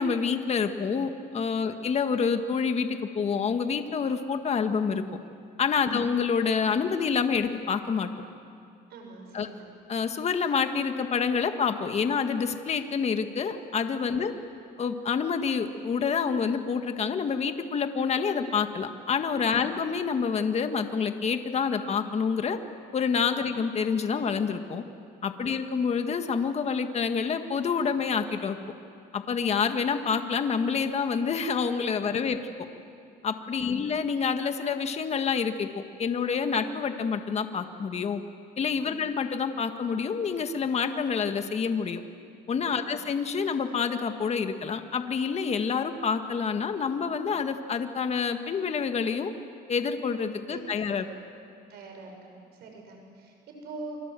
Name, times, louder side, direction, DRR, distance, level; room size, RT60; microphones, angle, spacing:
voice 1, 0.0-5.0 5.6-8.1 9.3-9.5 9.9-14.3 14.8-22.6 22.9-24.8 25.2-28.6 29.1-32.4 33.2-38.2 38.6-42.0 42.5-49.3 49.7-51.1, left 6 dB, 40° left, 7 dB, 1.7 m, -27 dB
voice 2, 8.9-9.7 14.1-14.3 19.5-19.8 23.4-23.5 25.4-25.7 32.1-32.4 33.6-33.9 38.8-39.1 42.7-43.0 50.5-50.6 51.1-51.2 51.7-54.0, right 3 dB, 75° right, 2 dB, 6.4 m, -45 dB
29.0 x 25.0 x 7.7 m, 2.4 s
cardioid pair, 110°, 17 cm